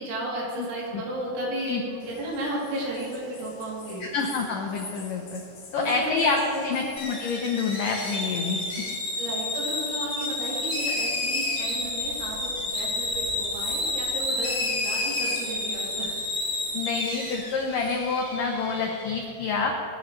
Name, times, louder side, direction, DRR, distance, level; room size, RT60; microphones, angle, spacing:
voice 1, 0.0-4.1 5.8-6.8 9.2-16.1, right 1 dB, 85° right, -5 dB, 5.5 m, -33 dB
sound 1, 2.0-18.1, left 3 dB, 45° left, 2.9 m, -47 dB
voice 2, 4.0-5.4 5.7-6.4 6.6-8.6 16.7-19.7, left 4 dB, 85° left, 1 dB, 1.9 m, -27 dB
sound 2, 7.0-19.2, left 2 dB, 65° left, 0.8 m, -30 dB
23.5 x 11.0 x 3.2 m, 2.6 s
omnidirectional pair, 5.3 m